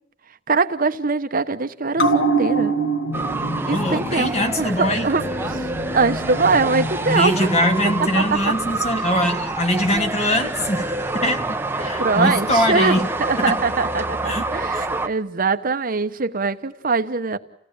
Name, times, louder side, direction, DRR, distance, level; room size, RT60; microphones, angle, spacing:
voice 1, 0.5-2.7 3.7-7.5 8.0-8.2 11.8-14.2 14.5-17.4, right 4 dB, 45° right, 1.0 m, -22 dB
sound 1, 1.9-8.9 9.2-9.3, right 2 dB, 70° left, 2.4 m, -26 dB
sound 2, 3.1-15.1, right 2 dB, 10° right, 0.9 m, -27 dB
voice 2, 3.6-5.1 7.0-13.1 13.4-13.6 14.2-14.4, left 1 dB, 35° left, 2.2 m, -22 dB
29.5 x 17.0 x 8.8 m
head